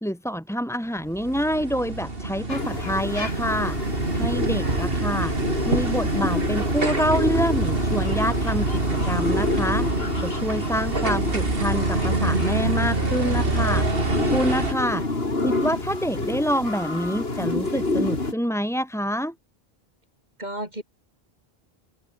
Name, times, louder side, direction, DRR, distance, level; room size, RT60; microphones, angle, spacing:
voice 1, 0.0-3.8 4.1-5.3 5.7-9.9 10.2-13.9 14.3-15.0 15.4-19.3, equal, 5° left, 3.5 m, -26 dB
sound 1, 1.0-14.7, right 3 dB, 65° right, 3.3 m, -26 dB
sound 2, 2.5-18.3, left 2 dB, 75° left, 3.6 m, -29 dB
voice 2, 4.5-4.8 14.8-15.0 20.4-20.8, right 1 dB, 45° right, 7.9 m, -35 dB
open air
omnidirectional pair, 1.0 m